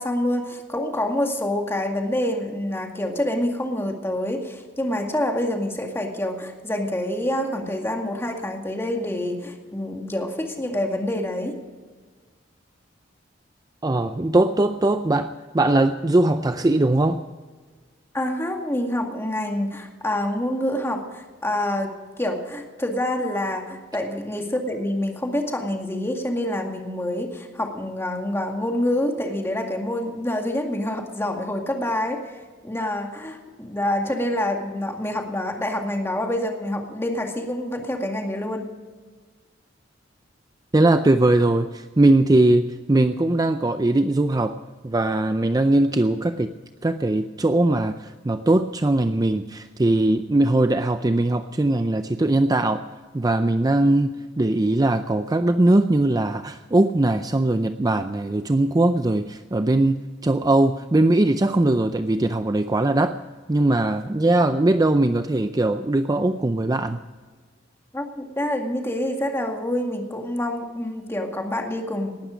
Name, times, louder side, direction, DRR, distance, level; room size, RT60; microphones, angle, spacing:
voice 1, 0.0-11.5 18.1-32.3 32.6-38.7 67.9-72.2, left 1 dB, 15° left, 3 dB, 2.1 m, -27 dB
voice 2, 13.8-17.2 40.7-44.5 44.8-46.5 46.8-52.8 53.1-63.2 63.5-67.0, right 2 dB, 20° right, 9 dB, 0.5 m, -20 dB
19.0 x 12.0 x 5.1 m, 1.4 s
head